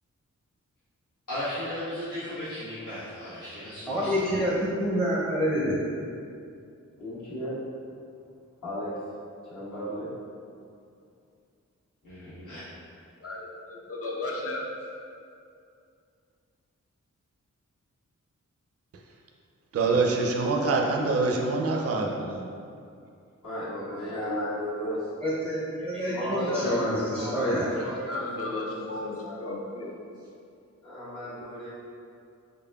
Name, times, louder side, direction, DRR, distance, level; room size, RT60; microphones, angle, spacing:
voice 1, 1.3-4.3 12.0-12.6, left 1 dB, 90° left, -14 dB, 1.1 m, -36 dB
voice 2, 3.9-5.8 25.2-27.7, equal, 5° left, -7 dB, 0.5 m, -27 dB
voice 3, 7.0-7.6 8.6-8.9 9.5-10.1 23.4-25.0 26.0-28.7 29.0-29.4 30.8-31.7, equal, 65° left, -12 dB, 1.4 m, -34 dB
voice 4, 13.2-14.6 28.1-30.0, left 2 dB, 50° left, -2 dB, 0.6 m, -34 dB
voice 5, 19.7-22.5, right 3 dB, 50° right, 0 dB, 0.4 m, -25 dB
3.9 x 3.4 x 2.3 m, 2.4 s
wide cardioid pair, 75°, 31 cm